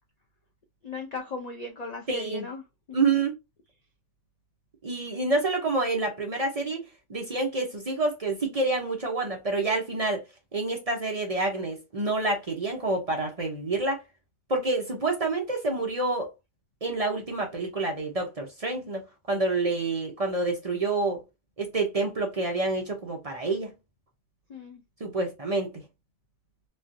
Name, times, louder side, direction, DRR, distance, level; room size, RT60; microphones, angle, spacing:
voice 1, 0.8-3.0 24.5-24.8, left 3 dB, 65° left, 0.4 m, -37 dB
voice 2, 2.1-2.5 2.9-3.3 4.8-6.8 7.1-10.2 10.5-14.0 14.5-16.3 16.8-19.0 19.3-21.2 21.6-23.7 25.0-25.7, right 3 dB, 40° right, 0.6 m, -28 dB
3.1 x 2.4 x 2.6 m
omnidirectional pair, 1.3 m